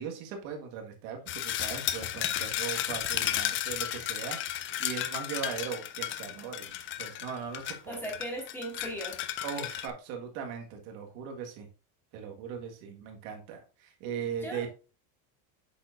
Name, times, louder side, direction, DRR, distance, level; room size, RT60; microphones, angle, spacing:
voice 1, 0.0-6.7 7.0-8.0 9.4-11.7 12.1-14.7, right 7 dB, 70° right, 3 dB, 1.9 m, -39 dB
sound 1, 1.3-9.9, left 12 dB, 30° left, 0.5 m, -33 dB
voice 2, 7.9-9.2 14.4-14.7, equal, 5° left, 0 dB, 2.1 m, -37 dB
8.1 x 6.4 x 2.6 m, 0.33 s
cardioid pair, 160°, 44 cm